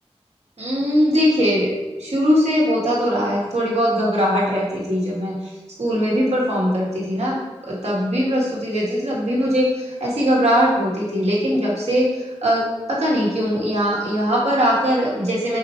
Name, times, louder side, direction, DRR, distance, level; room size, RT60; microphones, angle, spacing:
voice 1, 0.6-5.5 5.8-7.4 7.7-12.6 12.9-15.6, equal, 75° right, -5 dB, 1.8 m, -20 dB
4.7 x 4.5 x 4.3 m, 1.2 s
wide cardioid pair, 60°, 11 cm